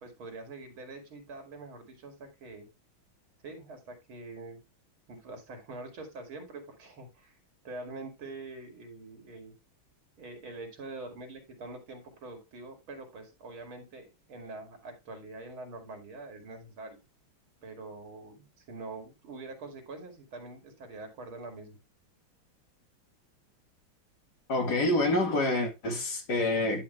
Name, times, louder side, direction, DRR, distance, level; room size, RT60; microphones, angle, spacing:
voice 1, 0.0-2.7 3.4-4.6 5.1-7.3 7.6-9.5 10.2-17.0 17.6-21.8, right 2 dB, 80° right, 3.4 m, -44 dB
voice 2, 24.5-26.8, left 2 dB, 50° left, 2.4 m, -27 dB
11.0 x 5.4 x 3.3 m
omnidirectional pair, 2.2 m